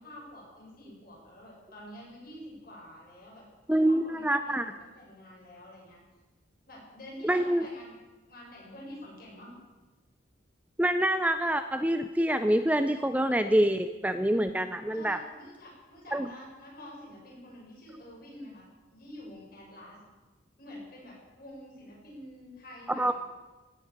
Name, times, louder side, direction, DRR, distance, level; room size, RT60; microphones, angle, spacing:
voice 1, 0.0-6.0 6.7-7.9 8.3-9.6 14.9-20.0 20.6-23.1, left 1 dB, 45° left, -3 dB, 6.9 m, -47 dB
voice 2, 3.7-4.7 7.2-7.6 10.8-15.2 16.1-16.3 23.0-23.1, right 1 dB, 5° right, 9 dB, 0.4 m, -26 dB
17.0 x 9.3 x 8.6 m, 1.2 s
head